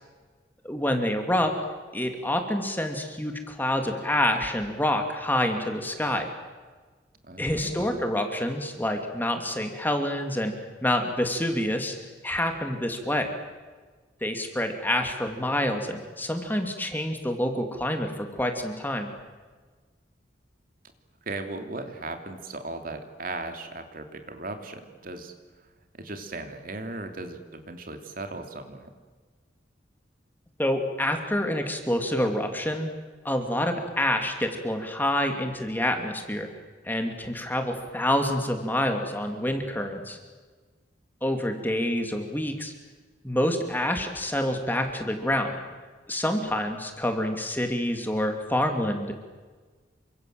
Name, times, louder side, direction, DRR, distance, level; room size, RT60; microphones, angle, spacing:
voice 1, 0.6-1.5 1.9-6.3 7.4-10.5 10.8-12.0 12.2-13.3 14.2-19.1 30.6-32.9 33.2-36.5 36.8-40.2 41.2-42.7 43.2-45.6 46.1-49.1, left 1 dB, 10° left, 5 dB, 2.8 m, -27 dB
voice 2, 7.2-8.1 21.3-25.3 26.0-28.9, right 2 dB, 50° right, 6 dB, 2.9 m, -37 dB
29.0 x 25.5 x 7.8 m, 1.4 s
head